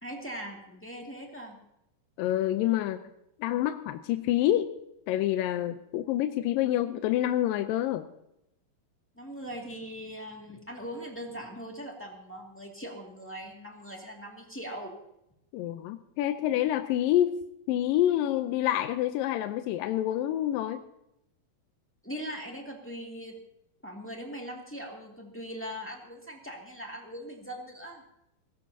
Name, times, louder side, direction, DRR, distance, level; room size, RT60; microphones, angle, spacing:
voice 1, 0.0-1.6 9.1-14.9 22.0-23.3 23.8-28.0, equal, 5° left, 0 dB, 1.2 m, -40 dB
voice 2, 2.2-3.0 3.4-4.7 5.1-8.1 15.5-17.4 17.7-20.8, left 12 dB, 80° left, 8 dB, 2.3 m, -27 dB
20.0 x 17.0 x 2.8 m, 0.83 s
omnidirectional pair, 4.2 m